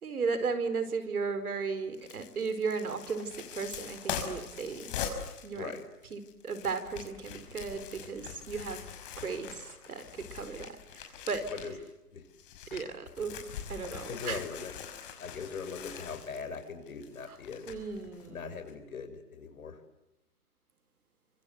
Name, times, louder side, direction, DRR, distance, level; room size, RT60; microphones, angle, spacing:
voice 1, 0.0-4.9 5.4-5.7 6.1-8.8 9.2-11.5 12.7-13.4 13.7-14.4 17.3-17.4 17.7-18.6, right 4 dB, 70° right, 11 dB, 4.7 m, -35 dB
sound 1, 1.9-11.9 12.2-18.3 18.6-18.7, left 8 dB, 35° left, 5.9 m, -43 dB
voice 2, 5.5-5.9 11.5-11.8 12.1-12.2 14.1-14.7 15.2-17.7 18.3-19.8, left 5 dB, 65° left, 8 dB, 6.4 m, -40 dB
27.0 x 25.5 x 8.2 m, 0.94 s
hypercardioid pair, 150°, 46 cm